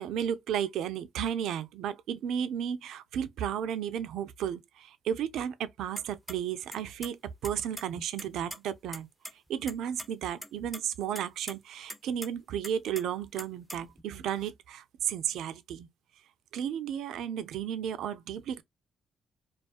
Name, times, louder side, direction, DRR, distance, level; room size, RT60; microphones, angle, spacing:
voice 1, 0.0-9.1 9.5-15.9 16.5-18.6, right 9 dB, 80° right, 0.3 m, -33 dB
sound 1, 6.0-6.3 6.7-7.1 7.4-8.6 8.9-9.0 9.2-9.3 9.7-10.1 10.4-10.8 11.1-11.5 11.9-12.3 12.6-14.0, equal, ahead, 0.4 m, -41 dB
2.3 x 2.2 x 2.4 m
supercardioid pair, 70°, 0 cm